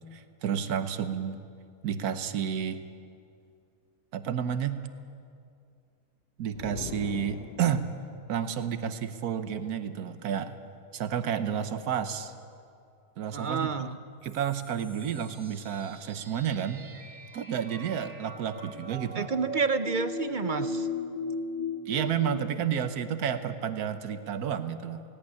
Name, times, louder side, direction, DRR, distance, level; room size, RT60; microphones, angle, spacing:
voice 1, 0.1-1.4 1.8-2.8 4.1-4.8 6.4-7.9 8.3-10.6 10.9-12.3 13.2-14.0 14.2-16.8 17.3-19.3 21.9-25.0, right 8 dB, 90° right, 11 dB, 1.4 m, -31 dB
sound 1, 6.5-8.2, left 8 dB, 60° left, 0.7 m, -41 dB
voice 2, 13.3-14.0 19.1-20.9, right 5 dB, 55° right, 12 dB, 0.5 m, -29 dB
sound 2, 14.2-22.4, left 2 dB, 40° right, 1.5 m, -38 dB
17.5 x 17.0 x 9.6 m, 2.4 s
omnidirectional pair, 1.6 m